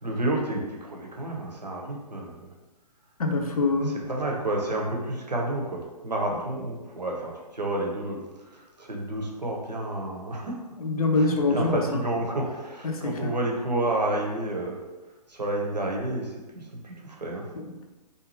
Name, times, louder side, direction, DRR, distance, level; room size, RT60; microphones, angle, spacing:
voice 1, 0.0-2.5 3.5-10.6 11.1-14.8 15.3-17.4, right 1 dB, 85° right, -1 dB, 0.7 m, -30 dB
voice 2, 3.2-3.9 10.8-11.8 12.8-13.3 17.6-17.9, left 3 dB, 60° left, 4 dB, 0.5 m, -25 dB
2.6 x 2.3 x 3.0 m, 1.2 s
figure-of-eight pair, 130°, 21 cm